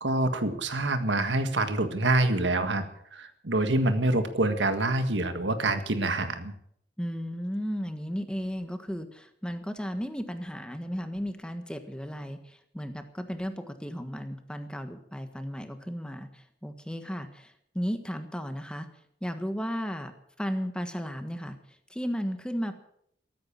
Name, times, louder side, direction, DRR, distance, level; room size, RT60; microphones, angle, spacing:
voice 1, 0.0-2.9 3.1-6.5, right 2 dB, 85° right, 9 dB, 1.7 m, -26 dB
voice 2, 7.0-18.9 19.2-20.1 20.4-21.6 21.9-22.7, equal, 5° left, 8 dB, 1.4 m, -34 dB
14.0 x 14.0 x 7.3 m, 0.68 s
head